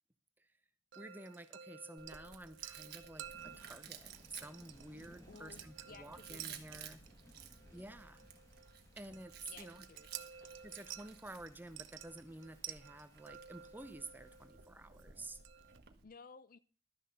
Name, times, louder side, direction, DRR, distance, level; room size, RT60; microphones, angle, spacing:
voice 1, 0.9-7.0 7.7-8.2 9.0-9.8 10.6-15.4, right 2 dB, 10° right, 0.8 m, -51 dB
sound 1, 0.9-15.8, right 10 dB, 75° right, 0.7 m, -53 dB
Chewing mastication, 2.0-16.0, right 8 dB, 55° right, 1.4 m, -56 dB
Thunder / Rain, 3.3-14.5, left 1 dB, 20° left, 2.0 m, -63 dB
voice 2, 5.3-7.0 7.7-8.2 9.5-10.6 16.0-16.6, left 5 dB, 45° left, 0.5 m, -58 dB
12.5 x 6.4 x 6.9 m
head